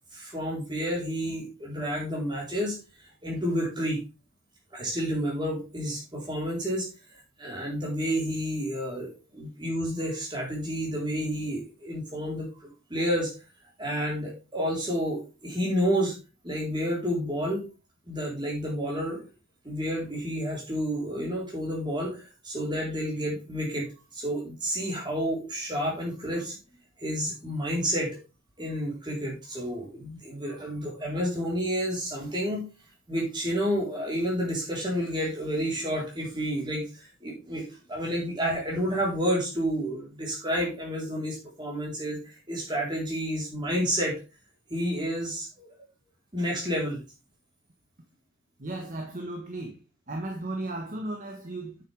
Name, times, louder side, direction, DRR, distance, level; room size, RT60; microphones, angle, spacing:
voice 1, 0.1-2.8 3.2-4.0 4.7-6.9 7.4-13.3 13.8-16.1 16.4-17.7 18.1-19.2 19.6-23.9 24.1-26.6 27.0-28.1 28.6-32.6 33.1-44.1 44.7-45.7 46.3-47.0, equal, 20° right, 3.8 m, -30 dB
voice 2, 48.6-49.7 50.1-51.8, right 2 dB, 40° right, 1.3 m, -35 dB
8.5 x 7.0 x 3.4 m
head